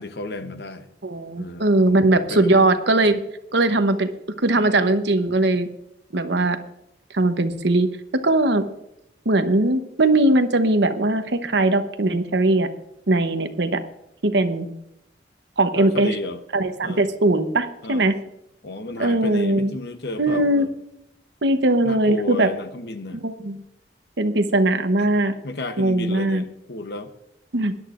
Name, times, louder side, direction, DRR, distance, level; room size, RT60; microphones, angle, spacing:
voice 1, 0.0-0.9 1.4-2.7 4.6-4.8 15.7-16.4 16.8-17.1 17.8-18.1 18.6-20.7 21.8-23.2 25.0-25.1 25.4-27.1, left 2 dB, 60° left, 9 dB, 0.9 m, -33 dB
voice 2, 1.0-3.2 3.5-4.1 4.4-5.7 6.1-6.6 7.1-7.9 8.2-8.6 9.2-12.7 13.1-13.8 14.2-14.7 15.6-16.1 16.5-18.1 19.0-19.7 20.2-20.7 21.4-22.5 23.2-23.6 24.2-25.3 25.8-26.4 27.5-27.7, right 2 dB, 75° right, 9 dB, 1.0 m, -20 dB
20.0 x 11.0 x 2.5 m, 0.82 s
head